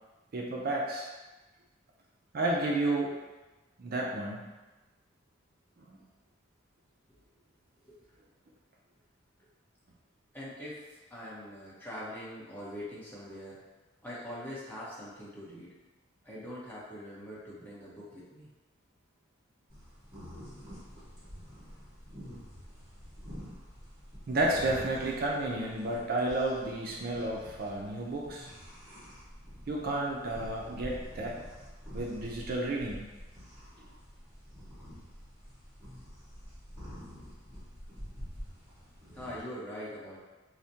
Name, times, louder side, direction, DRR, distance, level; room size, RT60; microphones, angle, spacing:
voice 1, 0.3-1.1 2.3-3.1 3.8-4.5 5.9-6.0 24.3-28.5 29.7-31.4 31.9-33.1, right 2 dB, 50° right, -2 dB, 0.4 m, -31 dB
voice 2, 10.3-13.6 14.0-15.7 16.2-18.5 39.1-40.2, equal, 10° left, -8 dB, 0.9 m, -43 dB
sound 1, 19.7-39.4, equal, 25° right, 1.5 m, -47 dB
4.7 x 2.1 x 2.8 m, 1.2 s
head